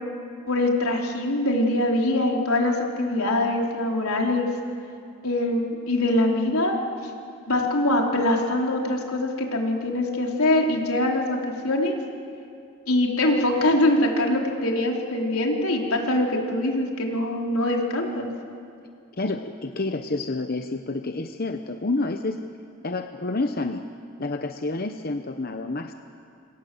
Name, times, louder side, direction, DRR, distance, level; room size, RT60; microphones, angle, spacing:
voice 1, 0.5-4.5 5.2-6.8 7.5-11.4 11.6-12.0 12.9-18.3, left 1 dB, 85° left, 0 dB, 4.2 m, -23 dB
voice 2, 19.2-22.4 22.8-23.8 24.2-25.9, left 2 dB, 45° left, 6 dB, 0.9 m, -29 dB
27.0 x 27.0 x 7.9 m, 2.4 s
head